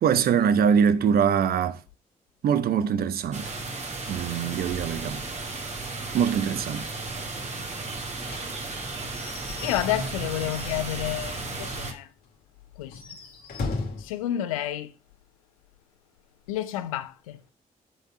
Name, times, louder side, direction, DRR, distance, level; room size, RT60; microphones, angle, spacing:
voice 1, 0.0-1.8 2.4-3.5 4.1-5.2 6.1-6.9, right 7 dB, 65° right, 0.9 m, -23 dB
sound 1, 3.3-11.9, right 3 dB, 40° right, 2.4 m, -34 dB
Slam / Squeak / Wood, 8.3-11.5 11.8-11.9 12.2-12.3 12.8-14.1, left 3 dB, 65° left, 2.1 m, -37 dB
voice 2, 9.6-12.1 12.8-13.0 14.0-14.9 16.5-17.4, left 13 dB, 90° left, 0.5 m, -30 dB
7.9 x 5.3 x 5.7 m
hypercardioid pair, 40°, 17 cm